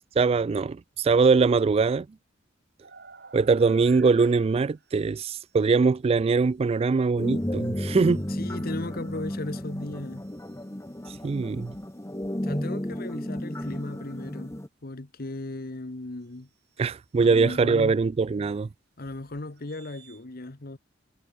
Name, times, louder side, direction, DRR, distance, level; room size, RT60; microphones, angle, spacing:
voice 1, 0.2-2.1 3.3-8.2 11.2-11.7 16.8-18.7, right 4 dB, 30° right, 0.3 m, -22 dB
sound 1, 2.8-5.6 6.3-6.4 7.4-8.4 10.2-12.2 12.9-13.1 13.5-13.8 16.2-16.3 16.7-17.2 19.5-20.2, right 5 dB, 55° right, 7.0 m, -53 dB
sound 2, 7.2-14.7, left 1 dB, 15° left, 1.3 m, -33 dB
voice 2, 8.3-10.3 12.4-14.5 14.8-16.5 17.2-18.0 19.0-20.8, left 2 dB, 50° left, 1.2 m, -36 dB
head